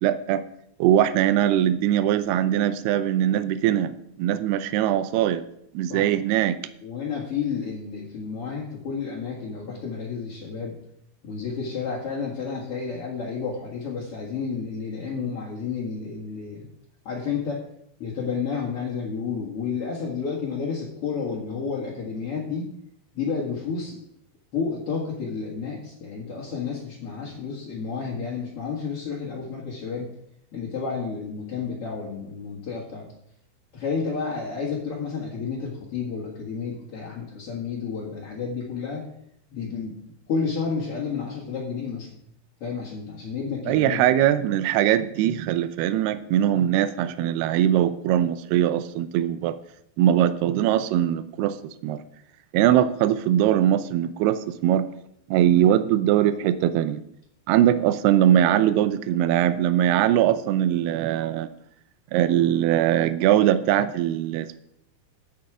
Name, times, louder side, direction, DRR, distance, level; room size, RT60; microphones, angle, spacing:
voice 1, 0.0-0.4 0.8-3.9 4.2-5.4 5.7-6.6 43.7-49.6 50.0-51.6 51.8-52.0 52.5-54.9 55.3-57.0 57.5-61.5 62.1-64.6, right 11 dB, 85° right, 12 dB, 2.3 m, -21 dB
voice 2, 6.8-10.8 11.2-16.7 17.1-17.6 18.0-22.7 23.1-24.0 24.5-30.1 30.5-33.1 33.7-39.0 39.5-39.9 40.3-42.2 42.6-44.0, left 5 dB, 50° left, -5 dB, 1.9 m, -31 dB
17.5 x 6.3 x 4.9 m, 0.73 s
omnidirectional pair, 5.4 m